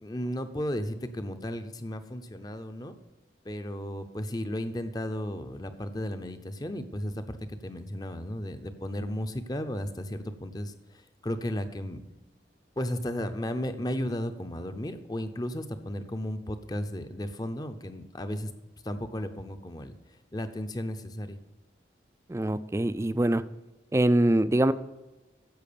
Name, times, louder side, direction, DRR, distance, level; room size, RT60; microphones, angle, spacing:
voice 1, 0.0-2.9 3.4-12.0 12.8-18.5 18.8-20.0 20.3-21.4, left 1 dB, 20° left, 9 dB, 0.7 m, -34 dB
voice 2, 22.3-23.4 23.9-24.7, right 1 dB, 15° right, 14 dB, 0.3 m, -23 dB
10.5 x 7.5 x 6.8 m, 1.1 s
head